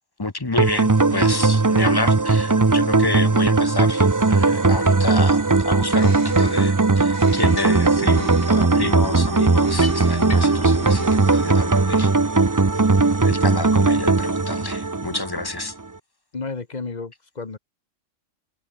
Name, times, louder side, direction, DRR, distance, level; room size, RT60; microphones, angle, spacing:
voice 1, 0.2-12.1 13.2-15.7, left 2 dB, 20° left, 1.1 m, -29 dB
sound 1, 0.6-15.6, right 3 dB, 20° right, 0.6 m, -18 dB
Bird, 5.7-8.8 9.5-11.7, right 2 dB, 50° right, 5.4 m, -45 dB
sound 2, 6.4-6.7 7.4-7.9 8.1-10.8, left 3 dB, 65° left, 4.0 m, -38 dB
voice 2, 16.3-17.6, left 4 dB, 35° left, 1.5 m, -32 dB
omnidirectional pair, 1.3 m